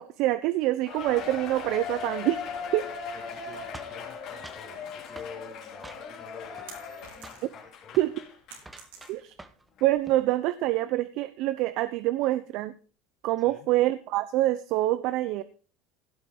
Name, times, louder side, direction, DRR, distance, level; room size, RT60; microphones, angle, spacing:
voice 1, 0.0-2.4 2.7-2.8 8.0-8.1 9.1-9.3 9.8-12.7 13.2-15.4, right 16 dB, 60° right, 13 dB, 0.7 m, -26 dB
Cheering, 0.9-8.6 9.0-9.1 9.8-9.9, left 6 dB, 50° left, 3.5 m, -39 dB
voice 2, 3.1-8.0 8.7-8.9 13.4-13.7, left 5 dB, 20° left, 0 dB, 4.2 m, -49 dB
sound 1, 3.7-4.7 5.2-5.4 5.8-6.3 6.6-7.0 7.2-7.5 7.9-8.1 8.6-9.7 9.9-10.3, right 2 dB, 10° right, 1.1 m, -47 dB
sound 2, 6.7-7.7 8.0-9.5, right 6 dB, 85° right, 4.3 m, -49 dB
16.5 x 5.9 x 5.3 m, 0.39 s
supercardioid pair, 120°, 0 cm